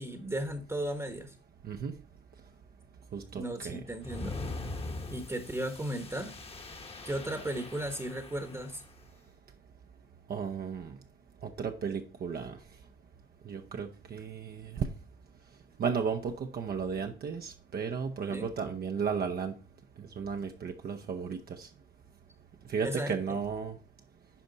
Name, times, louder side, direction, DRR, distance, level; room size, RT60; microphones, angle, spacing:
voice 1, 0.0-1.3 3.3-4.4 5.1-6.3 7.0-8.8 18.3-18.5 22.8-23.1, right 1 dB, 15° right, 1.1 m, -35 dB
voice 2, 3.1-3.8 10.3-11.0 11.4-12.6 13.5-14.9 15.8-19.5 20.2-21.7 22.7-23.8, right 6 dB, 50° right, 0.7 m, -34 dB
sound 1, 4.0-8.9, left 3 dB, 30° left, 1.2 m, -42 dB
10.0 x 5.0 x 4.0 m
cardioid pair, 90°, 20 cm